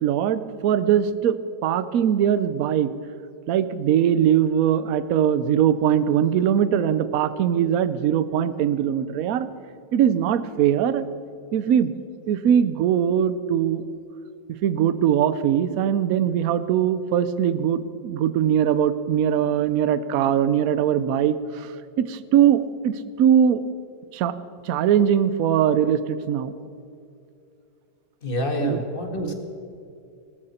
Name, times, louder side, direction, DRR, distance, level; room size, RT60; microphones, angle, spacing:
voice 1, 0.0-2.9 3.5-9.5 9.9-11.1 11.5-12.0 12.3-13.8 14.6-21.7 22.0-23.6 24.1-24.3 24.6-26.5 28.6-28.8 29.2-29.3, right 9 dB, 65° right, 14 dB, 1.0 m, -21 dB
voice 2, 28.2-29.3, left 1 dB, 30° left, 3 dB, 1.7 m, -27 dB
19.5 x 13.5 x 4.3 m, 2.5 s
omnidirectional pair, 2.0 m